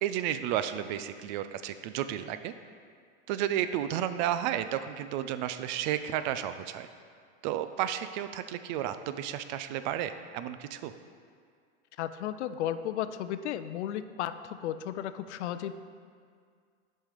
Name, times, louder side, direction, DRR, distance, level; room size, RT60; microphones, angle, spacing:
voice 1, 0.0-2.5 3.3-6.9 7.4-10.9, right 11 dB, 40° right, 11 dB, 0.4 m, -32 dB
voice 2, 12.0-15.7, left 11 dB, 70° left, 12 dB, 0.5 m, -34 dB
7.2 x 5.5 x 5.0 m, 2.1 s
hypercardioid pair, 120°, 35 cm